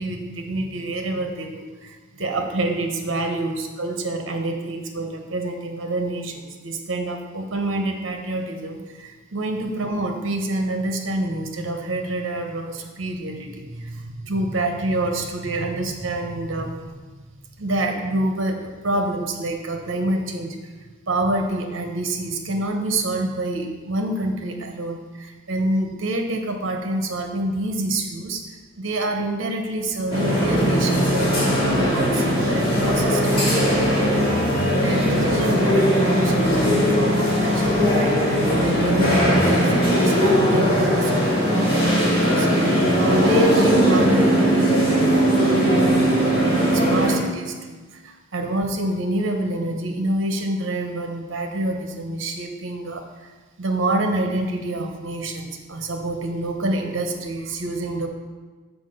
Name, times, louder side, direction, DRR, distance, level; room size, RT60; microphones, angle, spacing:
voice 1, 0.0-17.0 17.6-38.1 38.6-53.3 53.6-58.1, right 1 dB, 60° right, 4 dB, 1.0 m, -27 dB
sound 1, 30.1-47.1, equal, 25° left, 2.5 m, -19 dB
sound 2, 30.3-31.1 31.5-32.3 32.7-35.9 36.3-37.1 37.5-39.7, right 1 dB, 50° left, 2.5 m, -34 dB
6.0 x 5.0 x 6.6 m, 1.4 s
head